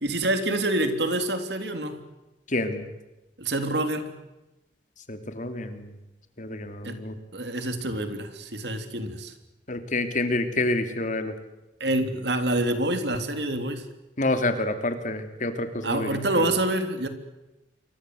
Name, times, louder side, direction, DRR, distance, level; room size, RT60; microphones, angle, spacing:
voice 1, 0.0-2.0 3.4-4.2 6.8-7.0 7.3-9.3 11.8-13.8 15.8-17.1, right 1 dB, 70° right, 8 dB, 3.4 m, -27 dB
voice 2, 2.5-2.9 5.1-5.9 6.4-7.2 9.7-11.3 14.2-16.5, left 2 dB, 45° left, 8 dB, 3.1 m, -28 dB
28.0 x 24.0 x 8.0 m, 1.0 s
head